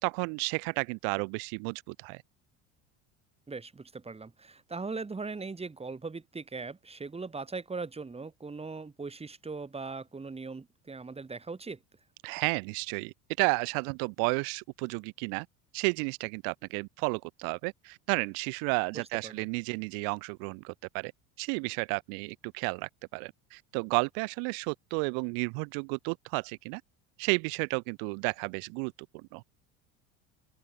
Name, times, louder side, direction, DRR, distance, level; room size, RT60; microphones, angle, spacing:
voice 1, 0.0-2.2 12.2-15.5 15.7-21.1 21.4-26.8 27.2-29.4, right 40 dB or more, 70° right, 1.1 m, -32 dB
voice 2, 3.5-11.8 19.2-19.5, right 4 dB, 15° right, 4.9 m, -39 dB
open air
supercardioid pair, 110°, 37 cm